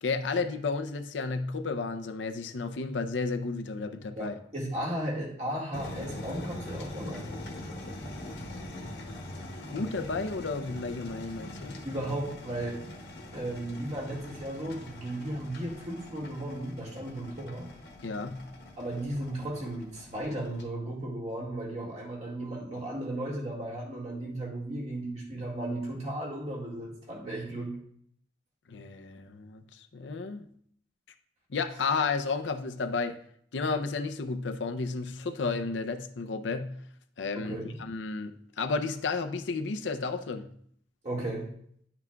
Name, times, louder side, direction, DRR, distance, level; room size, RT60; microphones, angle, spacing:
voice 1, 0.0-4.3 8.2-8.8 9.7-11.8 18.0-18.5 28.7-30.5 31.5-33.2 33.5-36.8 37.2-40.5, left 4 dB, 80° left, 0.6 m, -32 dB
voice 2, 4.2-7.2 8.0-8.1 11.8-12.8 13.3-17.7 18.8-27.7 37.3-37.7 41.0-41.5, right 1 dB, 40° right, 1.9 m, -35 dB
sound 1, 5.7-20.6, left 1 dB, 65° left, 1.1 m, -43 dB
10.5 x 5.9 x 2.3 m
head